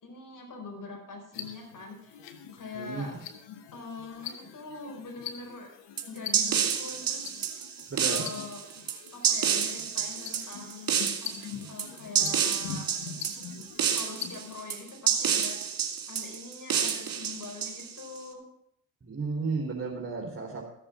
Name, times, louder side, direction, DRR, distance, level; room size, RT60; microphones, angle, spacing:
voice 1, 0.0-2.2 2.5-3.2 3.7-5.7 6.0-7.2 8.0-8.6 9.1-10.9 11.2-11.3 11.6-12.9 13.9-18.5, left 3 dB, 45° left, 2 dB, 4.4 m, -43 dB
sound 1, 1.3-14.5, left 8 dB, 75° left, 1.4 m, -43 dB
voice 2, 2.7-3.2 7.9-8.2 19.0-20.6, right 4 dB, 25° right, -3 dB, 3.1 m, -33 dB
sound 2, 6.0-18.2, right 8 dB, 50° right, 2.4 m, -29 dB
14.5 x 7.2 x 6.0 m, 0.74 s
supercardioid pair, 65°, 43 cm